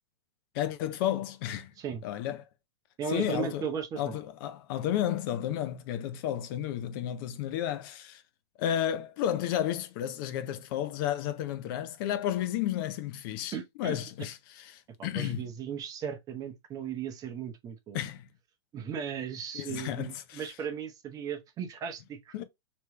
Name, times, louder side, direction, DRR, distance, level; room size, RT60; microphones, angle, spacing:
voice 1, 0.5-1.7 2.0-2.4 3.1-3.6 4.0-8.2 8.6-15.5 17.9-18.3 19.5-20.5 22.3-22.4, left 11 dB, 50° left, 0.7 m, -32 dB
voice 2, 3.0-4.2 13.5-14.0 15.0-18.0 18.7-22.3, right 7 dB, 25° right, 0.9 m, -36 dB
3.3 x 3.1 x 3.2 m
hypercardioid pair, 130°, 14 cm